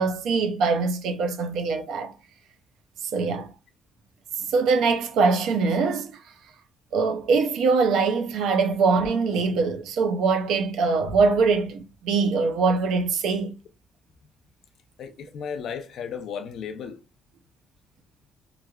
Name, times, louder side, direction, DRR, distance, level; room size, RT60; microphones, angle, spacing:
voice 1, 0.0-2.1 3.1-3.5 4.5-6.2 6.9-13.5, right 4 dB, 85° right, 0.6 m, -23 dB
voice 2, 15.0-17.0, left 7 dB, 70° left, 0.5 m, -34 dB
3.2 x 2.5 x 2.3 m
cardioid pair, 90°, 0 cm